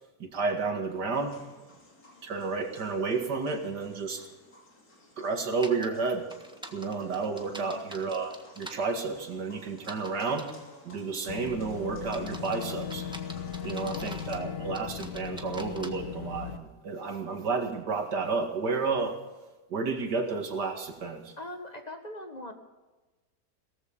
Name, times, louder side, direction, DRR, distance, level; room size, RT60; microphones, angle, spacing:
voice 1, 0.2-1.4 2.2-4.2 5.2-6.3 6.7-10.5 10.8-13.1 13.6-19.2 19.7-21.3, right 4 dB, 80° right, 4 dB, 2.6 m, -31 dB
sound 1, 1.1-14.4, left 2 dB, 60° left, 3.8 m, -55 dB
sound 2, 5.6-5.9 6.3-8.8 9.8-10.6 11.2-11.5 12.0-14.4 14.7-15.9, right 1 dB, 5° right, 1.3 m, -45 dB
Boat Water vehicle / Engine, 11.3-16.6, left 8 dB, 85° left, 1.6 m, -38 dB
voice 2, 13.7-14.2 21.4-22.5, left 1 dB, 25° left, 5 dB, 1.7 m, -42 dB
18.0 x 14.5 x 5.1 m, 1.2 s
omnidirectional pair, 1.8 m